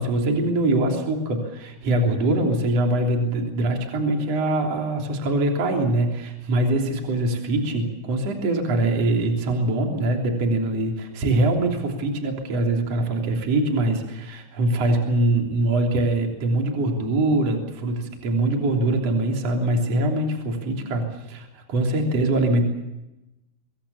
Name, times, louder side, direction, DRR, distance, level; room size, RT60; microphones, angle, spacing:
voice 1, 0.0-22.6, right 2 dB, 40° right, 2 dB, 4.2 m, -23 dB
26.0 x 22.5 x 7.1 m, 0.97 s
omnidirectional pair, 4.6 m